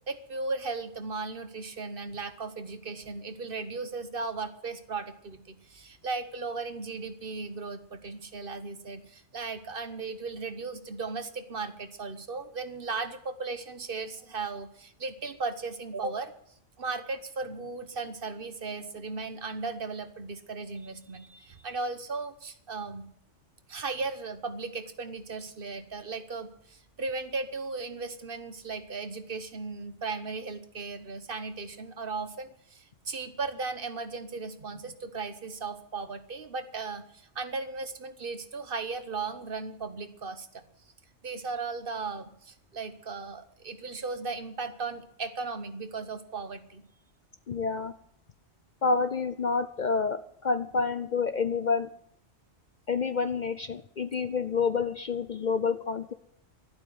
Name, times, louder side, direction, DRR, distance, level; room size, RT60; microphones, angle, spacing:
voice 1, 0.1-16.3 16.8-23.1 23.7-40.7 41.2-46.8, right 4 dB, 50° right, 10 dB, 1.2 m, -36 dB
voice 2, 47.5-47.9 48.8-51.9 52.9-56.1, left 5 dB, 45° left, 11 dB, 0.7 m, -28 dB
12.0 x 11.5 x 7.8 m, 0.67 s
omnidirectional pair, 1.2 m